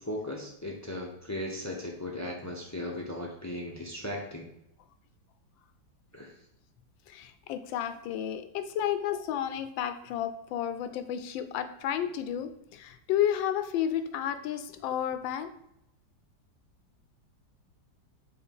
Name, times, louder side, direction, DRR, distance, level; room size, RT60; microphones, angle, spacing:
voice 1, 0.0-4.5 6.1-6.3, left 1 dB, 20° left, -1 dB, 0.4 m, -37 dB
voice 2, 7.1-15.5, left 10 dB, 80° left, 10 dB, 1.3 m, -32 dB
5.4 x 4.0 x 5.4 m, 0.79 s
omnidirectional pair, 2.1 m